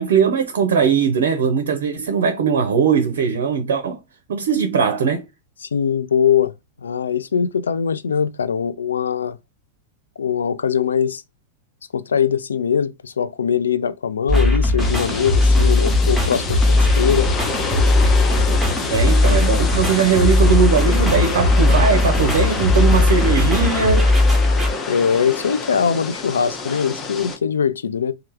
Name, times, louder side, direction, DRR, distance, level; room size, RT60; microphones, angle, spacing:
voice 1, 0.0-4.0 4.3-5.2 18.9-24.1, right 6 dB, 60° right, 0.6 m, -19 dB
voice 2, 5.6-6.5 6.8-9.4 10.2-11.2 11.9-17.3 24.9-28.1, left 7 dB, 70° left, 0.3 m, -21 dB
sound 1, 14.3-24.7, left 2 dB, ahead, 1.1 m, -17 dB
sound 2, 14.8-27.4, left 4 dB, 25° left, 0.6 m, -28 dB
3.2 x 2.3 x 3.2 m
figure-of-eight pair, 90°, 0 cm